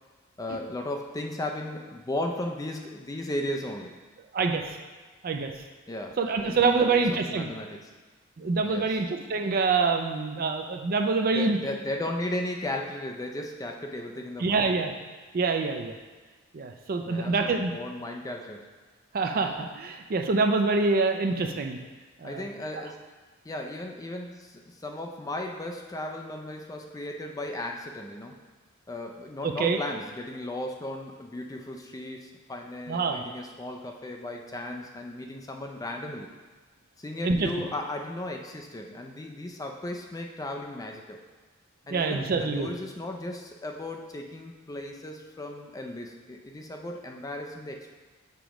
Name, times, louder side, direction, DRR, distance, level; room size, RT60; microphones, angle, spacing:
voice 1, 0.4-3.9 5.9-6.2 6.4-7.9 8.6-8.9 11.3-14.8 17.0-18.7 22.2-23.0 23.4-28.4 28.9-36.3 37.0-41.2 41.9-47.9, left 1 dB, 15° left, 2 dB, 0.4 m, -36 dB
voice 2, 6.2-7.5 8.4-11.6 14.4-14.9 15.3-15.9 16.5-17.7 19.1-21.8 22.2-22.5 29.4-29.8 32.9-33.2 37.2-37.5 41.9-42.7, right 4 dB, 45° right, 4 dB, 0.4 m, -26 dB
6.8 x 4.9 x 3.0 m, 1.3 s
head